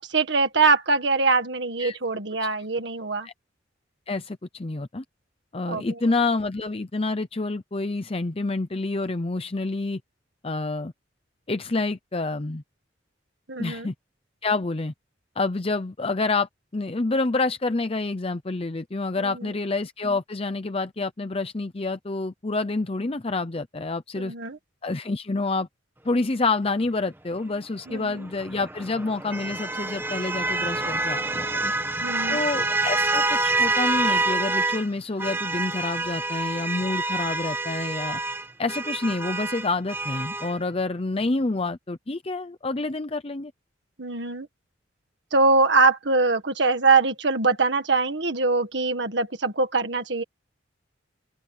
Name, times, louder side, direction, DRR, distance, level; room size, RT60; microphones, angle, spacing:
voice 1, 0.0-3.3 5.7-5.8 13.5-13.9 19.2-19.3 24.2-24.6 27.9-28.2 32.0-32.4 44.0-44.5 45.3-50.2, right 3 dB, 65° right, 1.8 m, -23 dB
voice 2, 4.1-5.0 5.5-10.0 10.4-10.9 11.5-12.6 13.6-13.9 14.4-14.9 15.4-24.3 24.8-25.7 26.0-31.7 32.3-38.2 38.6-43.5, left 3 dB, 30° left, 0.7 m, -28 dB
sound 1, 28.2-34.9 35.2-40.6, right 2 dB, 10° right, 1.6 m, -27 dB
head